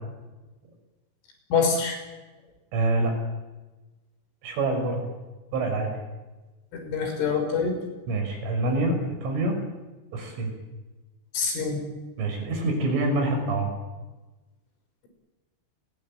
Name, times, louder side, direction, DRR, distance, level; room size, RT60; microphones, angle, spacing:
voice 1, 1.5-2.0 6.7-7.7 11.3-11.8, left 5 dB, 80° left, 5 dB, 8.3 m, -25 dB
voice 2, 2.7-3.1 4.4-5.1 5.5-6.0 8.1-9.6 10.1-10.5 12.2-13.7, right 2 dB, 85° right, 4 dB, 8.7 m, -26 dB
30.0 x 21.0 x 9.0 m, 1.2 s
omnidirectional pair, 5.5 m